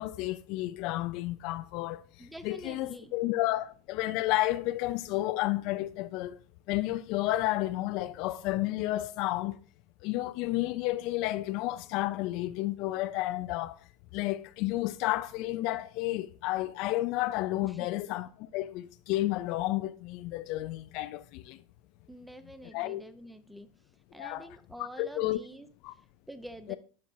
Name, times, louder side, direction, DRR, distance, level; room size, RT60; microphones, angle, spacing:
voice 1, 0.0-2.0 2.4-6.4 6.7-9.6 10.0-13.8 14.1-21.6 22.7-23.0 24.2-24.5 25.0-25.4 25.8-25.9 26.7-26.8, left 17 dB, 55° left, 0.4 m, -31 dB
voice 2, 2.2-3.1 17.6-17.9 22.1-23.7 24.1-25.7 26.3-26.8, equal, 5° right, 0.7 m, -47 dB
12.5 x 4.4 x 2.7 m
supercardioid pair, 120°, 0 cm